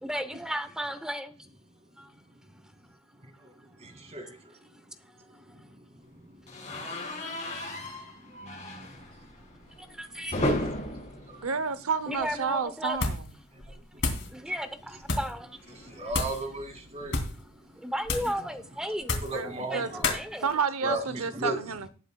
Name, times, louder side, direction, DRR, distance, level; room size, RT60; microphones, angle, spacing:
voice 1, 0.0-1.5 2.0-2.1 5.1-5.7 9.8-10.4 12.1-13.0 14.3-16.1 17.7-20.6, equal, 5° right, 0.8 m, -35 dB
voice 2, 3.8-4.6 5.5-5.8 6.1-6.4 6.7-7.9 8.2-9.1 11.2-11.5 13.5-13.6 14.3-14.5 15.7-17.4 19.2-20.0 20.8-21.6, right 2 dB, 30° right, 2.4 m, -37 dB
sound 1, 6.5-12.5 12.8-13.0 13.3-13.4 14.6-17.0, left 1 dB, 35° left, 6.8 m, -36 dB
voice 3, 11.4-13.2 19.3-19.9 20.4-21.9, right 5 dB, 85° right, 0.8 m, -30 dB
sound 2, 12.9-13.3 13.6-14.3 15.0-15.4 16.1-16.4 17.0-17.4 18.0-18.4 19.0-19.4 20.0-20.2, left 3 dB, 60° left, 3.1 m, -30 dB
18.0 x 9.0 x 2.3 m
head